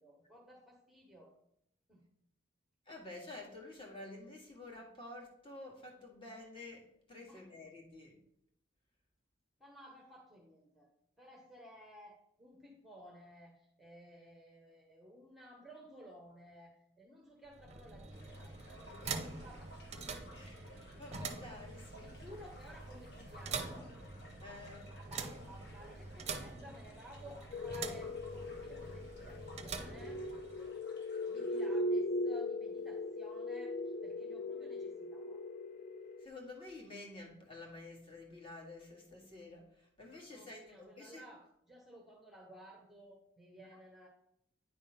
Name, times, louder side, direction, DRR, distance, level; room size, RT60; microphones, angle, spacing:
voice 1, 0.0-1.3 1.9-2.0 7.3-7.5 9.6-10.9 11.2-18.7 19.4-19.7 20.9-21.1 22.0-23.9 24.8-30.2 31.3-33.8 34.0-35.4 40.3-44.1, equal, ahead, -1 dB, 1.0 m, -56 dB
voice 2, 2.9-8.1 18.8-19.3 20.3-22.1 24.4-24.9 36.2-39.7 40.0-41.2, left 2 dB, 25° left, -1 dB, 1.8 m, -50 dB
sound 1, 17.4-30.7, right 4 dB, 35° right, 0.6 m, -45 dB
sound 2, 18.1-31.7, left 1 dB, 60° left, 1.6 m, -58 dB
sound 3, 27.5-36.3, left 1 dB, 45° left, 0.3 m, -39 dB
9.3 x 3.6 x 5.6 m, 0.74 s
head